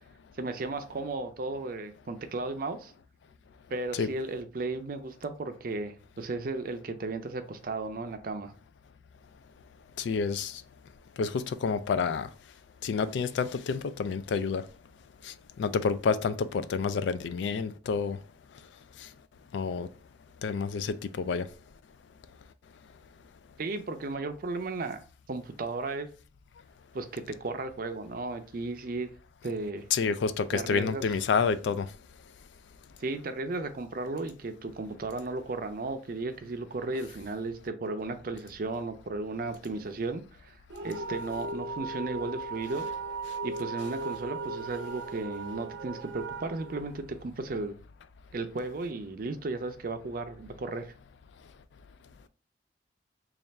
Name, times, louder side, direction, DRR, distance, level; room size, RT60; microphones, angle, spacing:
voice 1, 0.4-2.9 3.7-8.5 23.6-26.1 26.9-29.1 29.4-29.9 30.5-31.0 33.0-40.6 40.8-42.9 43.4-47.7 48.3-50.9, right 3 dB, 50° right, 0.5 m, -35 dB
voice 2, 10.0-10.6 11.2-12.3 12.8-14.6 15.2-18.2 19.0-19.1 19.5-19.9 20.4-21.5 29.9-31.9, left 5 dB, 75° left, 0.3 m, -29 dB
sound 1, 40.7-47.6, right 3 dB, 85° right, 0.7 m, -37 dB
3.3 x 2.4 x 4.0 m
head